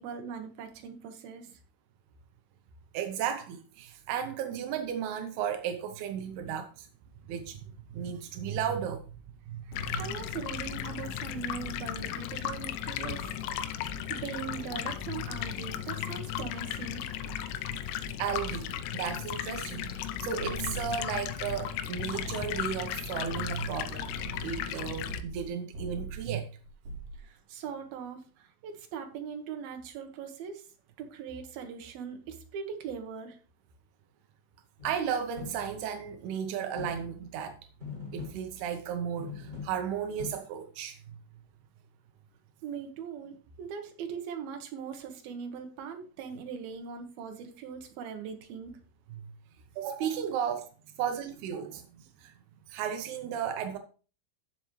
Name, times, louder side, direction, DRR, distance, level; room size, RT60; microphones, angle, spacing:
voice 1, 0.0-1.6 9.9-13.4 14.1-17.2 27.2-30.6 31.0-33.4 42.6-48.7, right 7 dB, 65° right, 2.5 m, -40 dB
voice 2, 2.9-6.9 7.3-9.0 9.5-10.0 18.2-24.1 24.4-26.5 34.8-37.6 38.1-41.0 49.8-50.6 51.0-52.3 52.7-53.8, right 8 dB, 85° right, 2.2 m, -34 dB
Stream, 9.7-25.2, left 10 dB, 85° left, 3.4 m, -36 dB
sound 1, 20.4-21.9 22.2-25.5 25.7-26.3 26.6-27.2, right 4 dB, 50° right, 6.2 m, -42 dB
sound 2, 34.8-36.0 36.8-37.4 37.8-38.9 39.2-40.3, left 5 dB, 20° right, 5.1 m, -43 dB
14.5 x 6.0 x 3.1 m
omnidirectional pair, 5.8 m